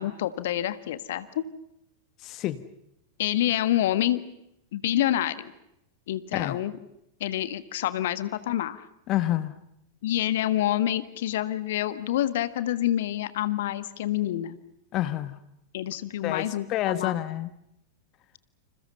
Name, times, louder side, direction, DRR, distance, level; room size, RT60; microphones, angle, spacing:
voice 1, 0.0-1.4 3.2-4.2 4.7-5.4 6.1-6.7 7.2-8.8 10.0-14.6 15.7-17.1, left 13 dB, 55° left, 14 dB, 1.5 m, -27 dB
voice 2, 2.2-2.6 6.3-6.6 9.1-9.5 14.9-15.4 16.2-17.5, left 13 dB, 35° left, 13 dB, 1.4 m, -28 dB
29.5 x 27.5 x 5.5 m, 0.80 s
figure-of-eight pair, 90°, 0 cm